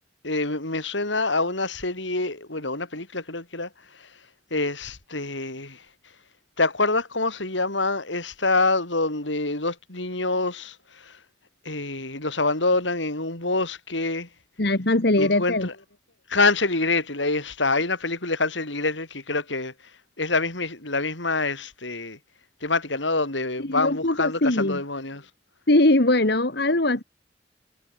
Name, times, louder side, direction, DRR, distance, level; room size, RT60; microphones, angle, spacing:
voice 1, 0.2-3.7 4.5-5.8 6.6-11.2 11.7-14.3 15.2-15.7 16.3-19.7 20.2-22.2 22.6-25.3, left 3 dB, 80° left, 5.6 m, -26 dB
voice 2, 14.6-15.7 23.6-24.8 25.7-27.0, left 2 dB, 60° left, 2.0 m, -21 dB
head